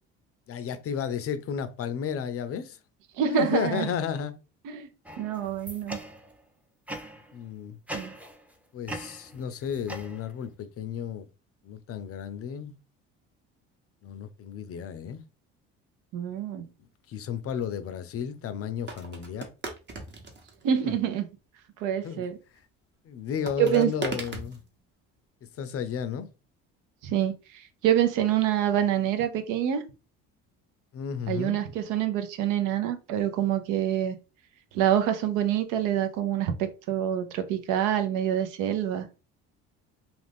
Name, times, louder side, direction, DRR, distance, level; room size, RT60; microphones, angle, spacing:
voice 1, 0.5-2.8 3.2-4.4 7.3-7.8 8.7-11.3 11.6-12.8 14.0-15.2 17.1-19.5 20.8-21.0 22.0-22.3 23.0-24.6 25.6-26.3 30.9-31.6, left 7 dB, 45° left, 0.5 m, -33 dB
voice 2, 3.2-3.9 4.6-4.9 5.2-6.0 7.9-8.1 16.1-16.7 20.6-21.3 21.8-22.4 23.6-23.9 27.0-29.8 31.3-34.2 34.7-39.1, right 10 dB, 75° right, 0.6 m, -26 dB
sound 1, 5.1-6.4 6.9-7.3 7.9-8.5 8.9-10.5, right 1 dB, 5° right, 0.6 m, -41 dB
sound 2, 17.6-17.7 18.9-20.8 23.5-24.7, right 3 dB, 35° right, 0.9 m, -37 dB
2.4 x 2.4 x 3.4 m
supercardioid pair, 80°, 32 cm